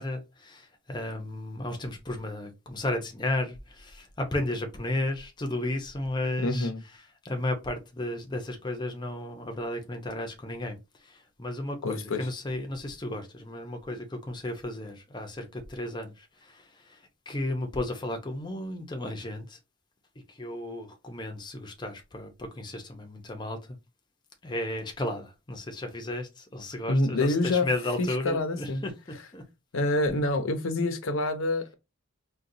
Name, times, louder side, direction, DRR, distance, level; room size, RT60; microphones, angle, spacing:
voice 1, 0.0-6.7 7.2-10.8 11.0-17.0 17.3-19.6 20.3-23.8 24.4-29.4, left 1 dB, 20° left, 0.6 m, -34 dB
voice 2, 6.4-6.8 11.8-12.2 26.9-27.7 28.0-28.8 29.7-31.7, left 2 dB, 75° left, 0.6 m, -27 dB
3.8 x 2.3 x 2.7 m
head